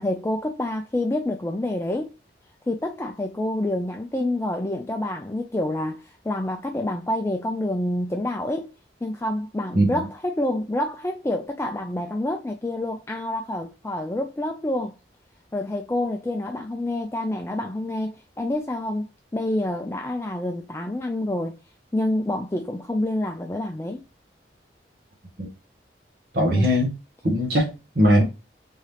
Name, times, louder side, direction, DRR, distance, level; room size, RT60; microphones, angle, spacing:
voice 1, 0.0-2.1 2.7-8.7 9.0-14.9 15.5-21.6 21.9-24.0 26.5-26.8, left 1 dB, 15° left, 0.4 m, -27 dB
voice 2, 26.3-26.9 27.2-28.2, equal, 55° right, 1.1 m, -20 dB
3.6 x 2.9 x 3.3 m
head